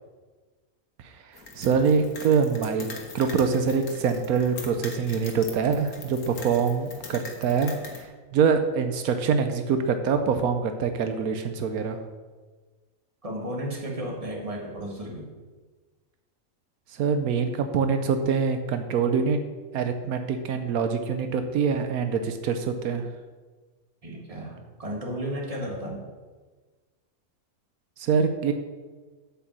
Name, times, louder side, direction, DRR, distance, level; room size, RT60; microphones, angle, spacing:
voice 1, 1.0-2.9 3.1-7.7 8.3-12.0 16.9-19.4 19.7-23.1 28.0-28.5, right 6 dB, 85° right, 7 dB, 1.2 m, -24 dB
sound 1, 1.3-8.0, left 4 dB, 85° left, 1.8 m, -42 dB
voice 2, 13.2-15.3 24.0-26.0, equal, 25° right, -1 dB, 1.8 m, -33 dB
8.2 x 5.8 x 7.3 m, 1.4 s
omnidirectional pair, 1.5 m